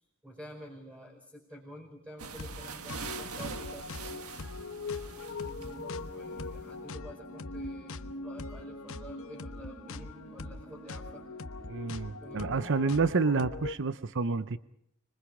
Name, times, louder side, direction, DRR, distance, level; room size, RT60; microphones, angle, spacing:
voice 1, 0.2-4.4 5.1-11.2 12.2-12.6, equal, 10° right, -3 dB, 5.1 m, -50 dB
sound 1, 2.2-6.8, right 5 dB, 75° right, 1.7 m, -44 dB
sound 2, 2.4-13.8, left 3 dB, 65° left, 1.0 m, -41 dB
sound 3, 5.6-13.0, right 2 dB, 30° right, 2.0 m, -54 dB
voice 2, 11.7-14.6, right 4 dB, 60° right, 14 dB, 0.7 m, -29 dB
26.0 x 23.0 x 4.9 m, 0.75 s
head